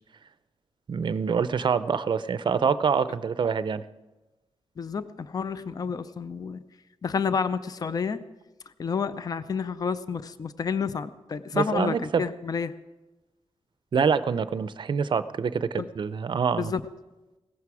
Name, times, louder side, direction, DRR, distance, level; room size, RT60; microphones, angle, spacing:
voice 1, 0.9-3.8 11.5-12.2 13.9-16.7, right 6 dB, 50° right, 14 dB, 0.5 m, -25 dB
voice 2, 4.8-6.6 7.0-8.2 8.8-12.7 15.8-15.9 16.6-16.8, left 6 dB, 40° left, 13 dB, 0.5 m, -30 dB
17.0 x 14.0 x 4.8 m, 1.1 s
wide cardioid pair, 165°, 10 cm